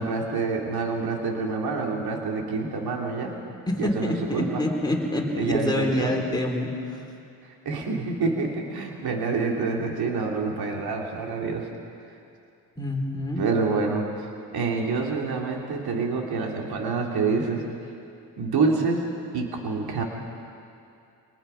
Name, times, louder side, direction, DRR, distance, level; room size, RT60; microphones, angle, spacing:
voice 1, 0.0-3.4 3.8-4.6 5.4-6.1 7.4-11.7 13.4-17.7 18.4-19.1 19.3-20.0, right 4 dB, 65° right, 0 dB, 3.1 m, -27 dB
voice 2, 3.7-7.0 12.8-13.4, left 1 dB, 10° left, 0 dB, 4.2 m, -27 dB
27.0 x 20.0 x 5.8 m, 2.6 s
cardioid pair, 75°, 40 cm